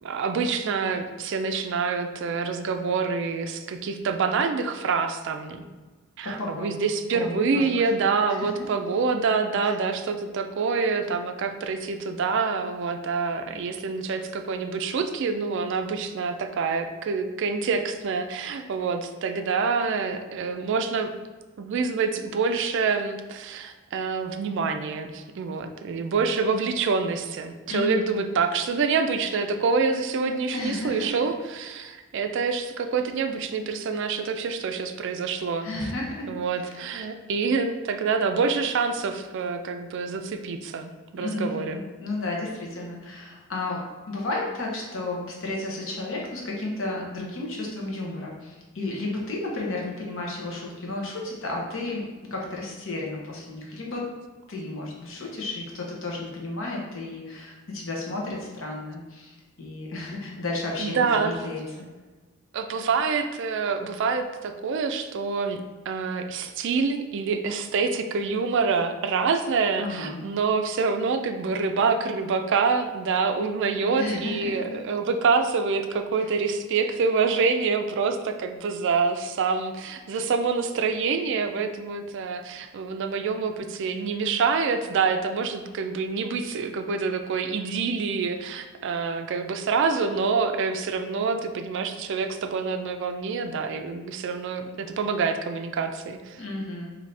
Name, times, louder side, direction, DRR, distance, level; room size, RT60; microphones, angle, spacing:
voice 1, 0.0-5.6 6.2-21.1 21.6-35.9 36.3-41.8 60.8-61.5 62.5-96.4, right 5 dB, 60° right, 7 dB, 0.3 m, -26 dB
voice 2, 6.2-6.6 7.1-7.6 9.6-9.7 27.7-28.1 30.5-31.1 35.6-36.3 36.6-36.8 41.1-52.0 52.3-54.1 54.5-61.9 69.8-70.3 74.0-74.7 76.2-76.3 96.4-97.0, left 2 dB, 65° left, -2 dB, 0.9 m, -33 dB
4.1 x 2.7 x 3.3 m, 1.3 s
head